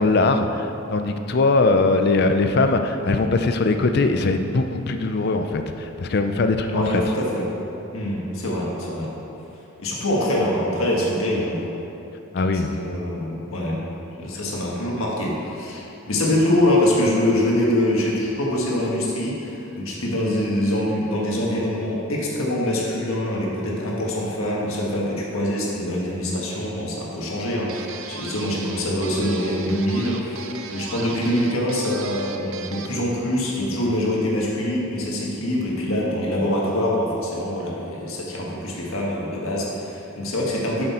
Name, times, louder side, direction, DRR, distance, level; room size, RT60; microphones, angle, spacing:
voice 1, 0.0-7.0 12.3-12.7, left 3 dB, 50° left, 7 dB, 0.4 m, -21 dB
voice 2, 6.7-7.4 7.9-9.1 9.8-11.6 12.5-13.8 14.2-40.8, left 1 dB, 80° left, -3 dB, 1.6 m, -24 dB
sound 1, 27.7-33.0, right 5 dB, 70° right, 0.5 m, -37 dB
7.6 x 6.7 x 4.3 m, 2.9 s
head